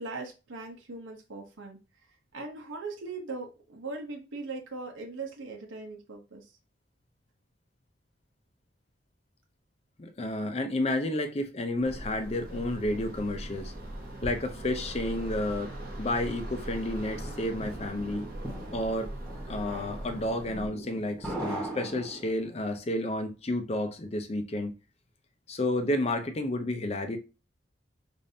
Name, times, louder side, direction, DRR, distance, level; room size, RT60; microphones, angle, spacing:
voice 1, 0.0-1.8 2.3-6.4, right 3 dB, 85° right, 0.8 m, -39 dB
voice 2, 10.0-13.7 14.2-15.7 16.0-18.3 18.7-19.1 19.5-24.7 25.5-27.2, left 1 dB, 30° left, 0.5 m, -31 dB
sound 1, 11.8-20.7, right 1 dB, 45° right, 1.0 m, -40 dB
sound 2, 16.7-22.6, right 1 dB, 5° left, 1.2 m, -40 dB
5.1 x 2.6 x 2.7 m
head